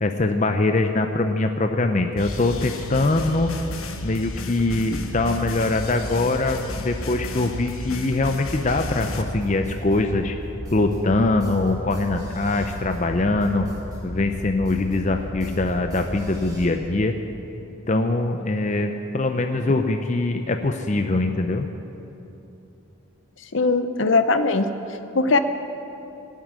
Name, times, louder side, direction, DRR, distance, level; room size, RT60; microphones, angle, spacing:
voice 1, 0.0-3.5 4.0-10.4 10.7-13.7 14.0-17.2 17.9-21.7, left 2 dB, 35° left, 6 dB, 0.5 m, -23 dB
sound 1, 2.2-9.2, left 1 dB, 80° left, 1.3 m, -33 dB
sound 2, 8.6-16.6, equal, 15° right, 2.6 m, -35 dB
voice 2, 23.5-24.7 25.1-25.4, left 3 dB, 65° left, 10 dB, 0.8 m, -20 dB
17.0 x 7.5 x 9.5 m, 3.0 s
head